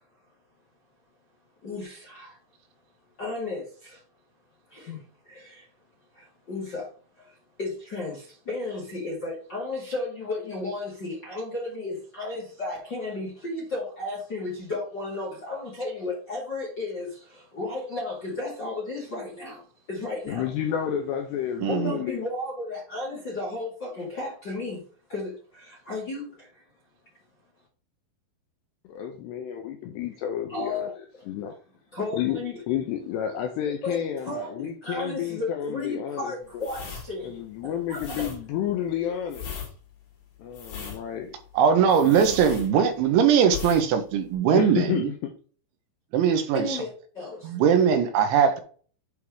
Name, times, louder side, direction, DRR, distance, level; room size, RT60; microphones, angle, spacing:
voice 1, 1.6-2.4 3.2-4.0 4.7-5.7 6.1-6.9 7.2-20.5 21.6-24.8 25.1-26.6 30.5-31.0 31.9-32.6 33.8-34.0 34.2-37.3 37.6-38.3 46.5-47.6, left 2 dB, 40° left, 1.5 m, -34 dB
voice 2, 20.3-22.2 28.8-30.9 31.3-31.6 32.1-32.4 32.7-36.7 37.2-39.5 40.4-41.4 42.0-42.4 44.5-45.3, left 9 dB, 85° left, 2.5 m, -30 dB
voice 3, 21.6-22.0 41.5-45.1 46.1-46.8 47.4-48.6, right 7 dB, 75° right, 3.2 m, -21 dB
sound 1, 36.6-43.1 43.5-43.9 44.1-44.3, left 7 dB, 60° left, 4.0 m, -38 dB
8.8 x 3.5 x 4.7 m
omnidirectional pair, 5.6 m